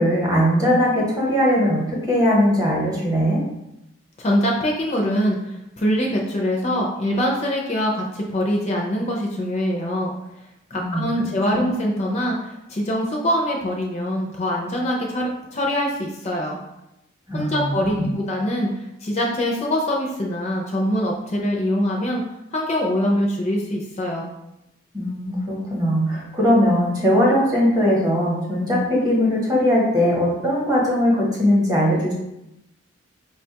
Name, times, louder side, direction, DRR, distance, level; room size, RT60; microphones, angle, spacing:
voice 1, 0.0-3.4 10.7-11.1 11.5-11.6 17.3-18.1 24.9-32.1, equal, 20° right, -4 dB, 0.8 m, -20 dB
voice 2, 4.2-10.1 10.7-16.6 17.3-18.7 19.0-22.2 22.5-24.3, equal, 30° left, -1 dB, 0.4 m, -23 dB
4.6 x 2.2 x 2.7 m, 0.88 s
head